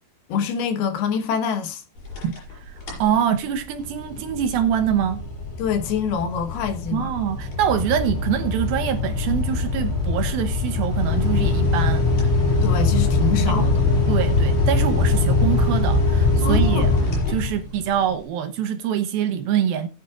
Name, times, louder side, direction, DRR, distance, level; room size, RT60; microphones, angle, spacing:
voice 1, 0.3-1.8 5.6-7.1 12.6-13.8 16.4-17.2, left 6 dB, 70° left, 3.0 m, -26 dB
sound 1, 2.0-2.5 2.8-3.2 3.6-17.9, left 3 dB, 50° left, 7.3 m, -22 dB
voice 2, 3.0-5.2 6.9-12.2 13.4-13.7 14.1-16.9 17.3-19.9, right 9 dB, 80° right, 2.3 m, -24 dB
18.5 x 8.8 x 2.4 m
omnidirectional pair, 5.0 m